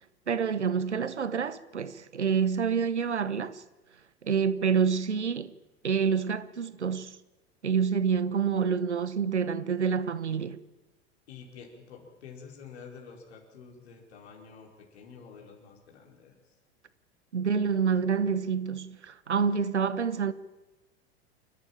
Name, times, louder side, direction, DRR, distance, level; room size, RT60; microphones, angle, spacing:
voice 1, 0.3-3.6 4.2-5.5 5.8-7.1 7.6-10.6 17.3-20.3, right 6 dB, 85° right, 1.0 m, -27 dB
voice 2, 11.3-16.5, left 6 dB, 70° left, 5.0 m, -49 dB
28.5 x 12.0 x 9.0 m
figure-of-eight pair, 80°, 33 cm